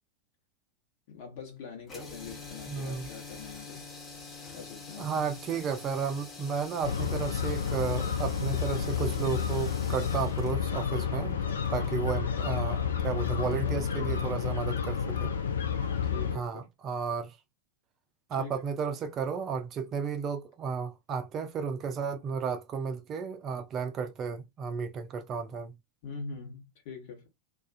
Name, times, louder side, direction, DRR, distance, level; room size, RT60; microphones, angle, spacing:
voice 1, 1.1-3.8 4.5-5.3 13.6-14.7 16.0-16.7 18.4-18.6 26.0-27.3, left 5 dB, 50° left, 1.1 m, -44 dB
sound 1, 1.8-12.0, left 4 dB, 25° left, 0.8 m, -46 dB
voice 2, 2.7-3.1 5.0-11.4 11.7-15.3 16.3-17.4 18.3-25.7, right 6 dB, 30° right, 0.4 m, -33 dB
sound 2, 6.8-16.4, left 7 dB, 65° left, 0.4 m, -30 dB
2.4 x 2.3 x 2.4 m
figure-of-eight pair, 90°, 0 cm